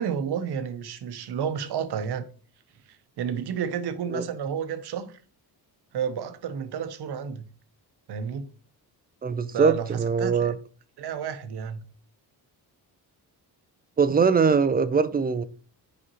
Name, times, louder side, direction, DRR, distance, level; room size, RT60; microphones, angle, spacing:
voice 1, 0.0-2.3 2.9-5.2 5.9-7.5 8.1-8.5 9.5-10.5 11.0-11.8, right 7 dB, 75° right, 0.8 m, -31 dB
voice 2, 9.2-10.5 14.0-15.4, right 5 dB, 25° right, 0.4 m, -22 dB
6.7 x 5.0 x 2.9 m
cardioid pair, 125°, 40 cm